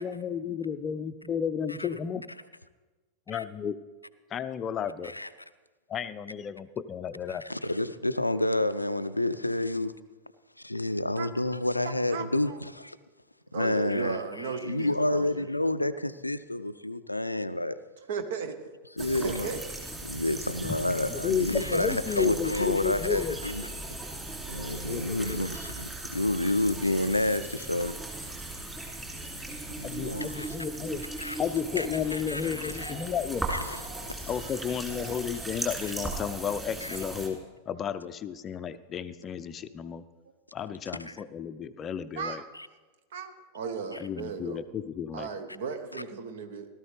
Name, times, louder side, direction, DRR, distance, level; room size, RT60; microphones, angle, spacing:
voice 1, 0.0-2.2 3.3-3.8 4.3-5.1 5.9-7.4 20.6-20.8 21.1-23.4 24.8-25.5 29.8-31.0 31.4-33.5 34.3-40.0 40.5-42.4 44.0-45.3, left 7 dB, 25° left, 12 dB, 0.5 m, -33 dB
voice 2, 7.3-9.9 10.6-13.0 13.5-17.8 19.0-19.6 20.0-23.7 24.5-28.0 29.8-30.5 31.2-31.4 31.8-31.9 32.1-32.9 33.5-33.8 36.8-37.0 41.0-41.1 45.9-46.0, left 1 dB, 85° left, 13 dB, 0.4 m, -29 dB
voice 3, 12.1-12.6 13.5-15.5 18.1-18.6 19.0-19.6 34.4-34.5 34.9-35.1 42.2-42.5 43.1-44.6 45.1-46.7, right 5 dB, 60° right, 9 dB, 0.9 m, -36 dB
sound 1, 19.0-37.3, right 2 dB, 10° right, 2.6 m, -38 dB
17.5 x 12.5 x 3.3 m, 1.3 s
figure-of-eight pair, 90°, 0 cm